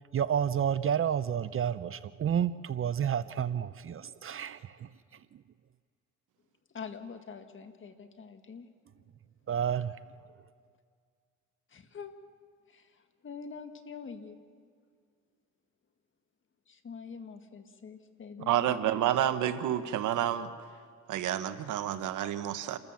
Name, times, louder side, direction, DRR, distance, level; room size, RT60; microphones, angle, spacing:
voice 1, 0.1-5.4 9.5-10.0, right 8 dB, 45° right, 0.6 m, -30 dB
voice 2, 6.7-8.7 11.7-12.2 12.7-14.4 16.7-18.8, left 5 dB, 40° left, 1.8 m, -45 dB
voice 3, 18.5-20.5 21.1-22.8, right 11 dB, 80° right, 1.1 m, -29 dB
29.0 x 13.5 x 7.2 m
cardioid pair, 90°, 30 cm